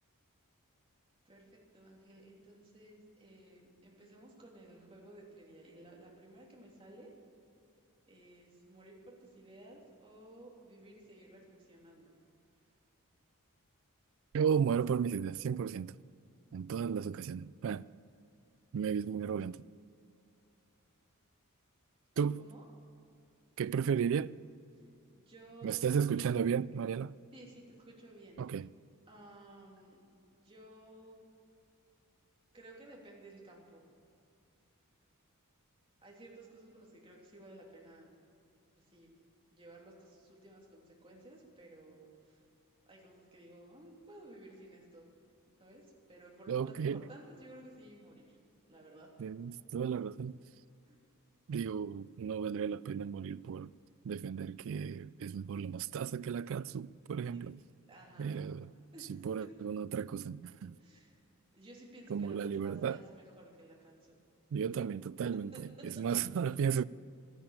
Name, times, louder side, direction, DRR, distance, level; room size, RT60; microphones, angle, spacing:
voice 1, 1.7-7.1 8.1-12.2 22.4-22.6 25.1-26.3 27.3-28.4 29.1-30.0 30.3-31.2 32.5-33.8 36.0-38.1 38.8-39.1 39.5-42.4 42.9-45.0 45.6-48.4 48.7-49.1 50.8-51.0 57.3-57.4 57.9-58.4 58.9-59.2 60.8-61.2 61.5-64.1 65.5-65.7 65.9-66.0, right 1 dB, 25° right, 3.1 m, -55 dB
voice 2, 14.3-15.9 16.5-17.9 18.7-19.6 22.2-22.4 23.6-24.4 25.6-27.2 28.4-28.7 46.5-47.1 49.2-50.4 51.5-53.7 54.0-57.6 58.2-58.7 59.1-60.8 62.1-63.0 64.5-66.8, right 7 dB, 60° right, 0.3 m, -34 dB
12.5 x 11.5 x 8.8 m
head